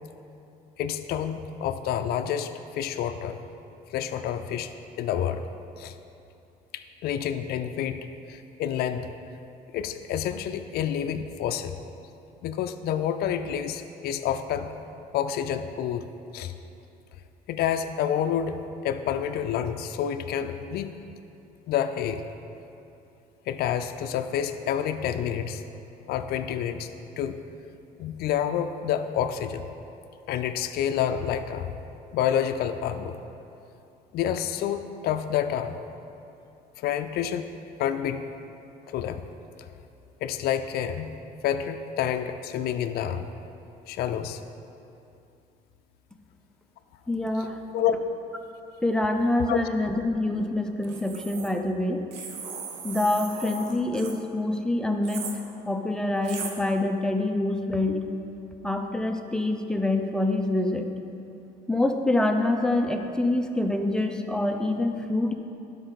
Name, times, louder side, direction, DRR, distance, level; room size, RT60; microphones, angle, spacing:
voice 1, 0.8-3.4 3.9-4.7 5.0-5.4 5.8-5.9 6.7-8.0 8.3-9.1 9.7-11.7 12.4-14.7 15.1-16.1 16.3-16.5 17.5-18.6 18.8-20.9 21.7-22.2 23.5-25.6 26.1-26.9 27.2-27.4 28.0-29.7 30.3-31.7 32.1-33.2 34.1-35.8 36.8-37.5 37.8-38.3 38.9-39.2 40.2-41.1 41.4-43.3 43.9-44.4 47.7-47.9 49.5-49.6, left 9 dB, 65° left, 8 dB, 0.4 m, -28 dB
voice 2, 47.1-47.6 48.8-52.0 52.8-55.3 55.7-58.0 58.6-60.8 61.7-65.3, left 2 dB, 5° left, 4 dB, 0.6 m, -26 dB
sound 1, 50.8-51.5 52.1-54.2 55.0-55.4 56.2-56.5, right 6 dB, 90° right, 0.9 m, -38 dB
12.0 x 5.3 x 4.0 m, 2.8 s
cardioid pair, 110°, 17 cm